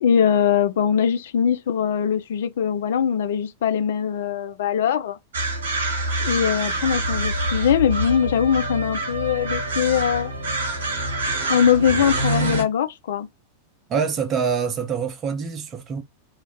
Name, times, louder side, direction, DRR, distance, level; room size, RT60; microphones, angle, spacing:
voice 1, 0.0-5.2 6.2-10.3 11.5-13.3, left 8 dB, 60° left, 0.3 m, -21 dB
sound 1, 5.3-12.6, right 2 dB, 65° right, 0.8 m, -26 dB
voice 2, 13.9-16.0, right 6 dB, 30° right, 0.6 m, -25 dB
2.4 x 2.1 x 2.9 m
figure-of-eight pair, 90°, 0 cm